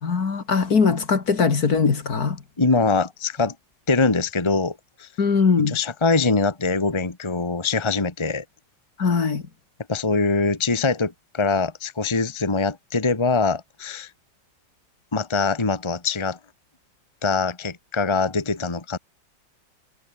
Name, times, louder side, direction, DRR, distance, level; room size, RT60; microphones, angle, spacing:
voice 1, 0.0-2.4 5.2-5.8 9.0-9.4, left 5 dB, 50° left, 2.5 m, -21 dB
voice 2, 2.6-3.5 3.9-5.1 5.7-8.4 9.9-14.1 15.1-16.4 17.2-19.0, left 4 dB, 15° left, 1.6 m, -23 dB
omnidirectional pair, 2.1 m